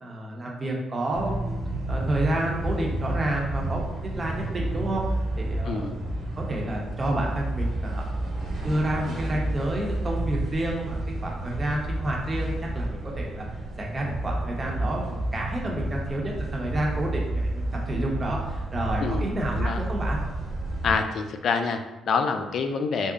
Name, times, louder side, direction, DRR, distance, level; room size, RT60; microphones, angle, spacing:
voice 1, 0.0-1.5 1.9-5.0 5.3-8.1 8.6-13.5 13.8-20.2, right 1 dB, 30° right, -1 dB, 0.8 m, -30 dB
sound 1, 1.1-21.0, right 1 dB, 65° right, 1.2 m, -30 dB
voice 2, 5.6-6.0 19.0-19.8 20.8-23.1, left 5 dB, 60° left, 7 dB, 0.3 m, -27 dB
3.6 x 2.1 x 3.8 m, 1.0 s
cardioid pair, 110°, 0 cm